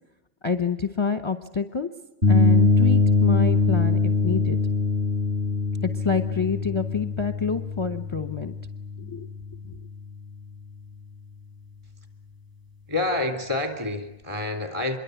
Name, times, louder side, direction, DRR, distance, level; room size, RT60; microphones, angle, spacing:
voice 1, 0.4-1.9 2.3-4.6 5.8-8.5 9.0-9.3 9.7-9.8, left 6 dB, 25° left, 10 dB, 0.9 m, -27 dB
sound 1, 2.2-9.9, left 3 dB, 40° right, 4.9 m, -23 dB
voice 2, 12.9-15.0, left 2 dB, 20° right, 7 dB, 3.8 m, -28 dB
26.5 x 22.5 x 8.2 m, 0.97 s
omnidirectional pair, 1.3 m